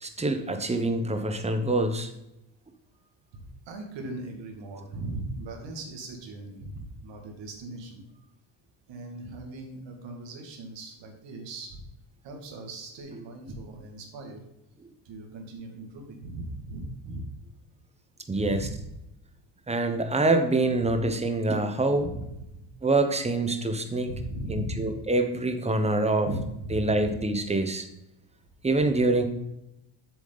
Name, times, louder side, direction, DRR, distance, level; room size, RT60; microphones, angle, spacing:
voice 1, 0.0-2.1 18.3-18.7 19.7-22.1 22.8-24.1 24.5-26.3 26.7-27.9 28.6-29.2, right 2 dB, 15° right, 7 dB, 0.9 m, -25 dB
voice 2, 3.3-8.0 8.9-11.8 12.2-14.4 15.1-17.2 18.3-18.9 20.8-21.0 21.9-22.7 24.1-24.9 26.3-27.2, right 2 dB, 60° right, 3 dB, 2.3 m, -38 dB
7.7 x 7.0 x 4.0 m, 0.87 s
cardioid pair, 115°, 48 cm